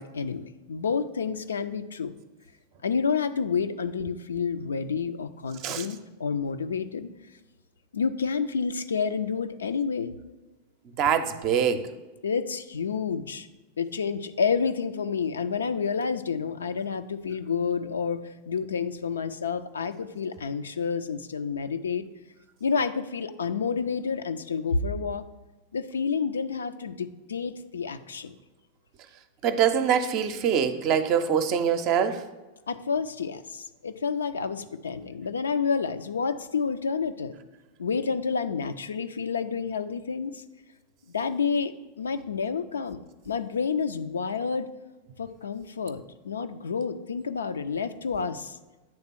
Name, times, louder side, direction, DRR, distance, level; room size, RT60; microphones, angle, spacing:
voice 1, 0.0-2.2 2.8-7.1 7.9-10.1 12.2-13.5 13.8-22.1 22.6-25.2 25.7-28.4 32.7-37.4 37.8-40.4 41.1-43.0 43.3-44.7 45.2-48.6, left 5 dB, 70° left, 10 dB, 0.4 m, -29 dB
voice 2, 11.0-11.8 29.4-32.2, right 8 dB, 40° right, 10 dB, 0.6 m, -24 dB
8.8 x 3.6 x 5.7 m, 1.2 s
figure-of-eight pair, 90°, 0 cm